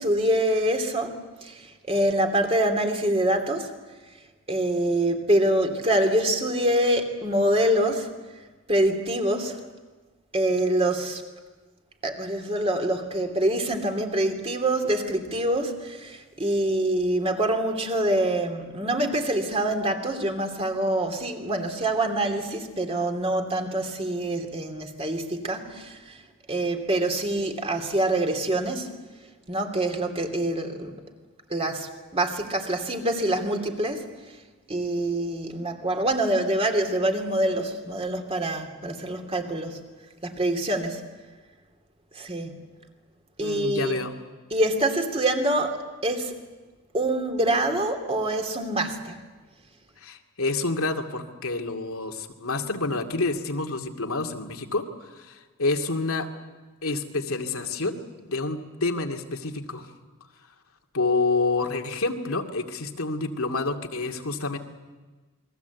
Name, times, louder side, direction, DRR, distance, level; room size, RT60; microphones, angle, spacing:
voice 1, 0.0-3.7 4.5-8.2 8.7-9.6 10.3-11.2 12.0-26.2 26.5-28.9 29.5-30.9 31.5-34.1 34.7-39.8 40.2-41.1 42.2-42.6 43.4-44.0 44.5-46.4 46.9-49.2, right 1 dB, 30° right, 2.7 m, -25 dB
voice 2, 43.4-44.1 50.0-54.8 55.1-56.3 56.8-59.8 60.9-64.6, left 3 dB, 85° left, 2.4 m, -28 dB
28.5 x 22.0 x 8.2 m
head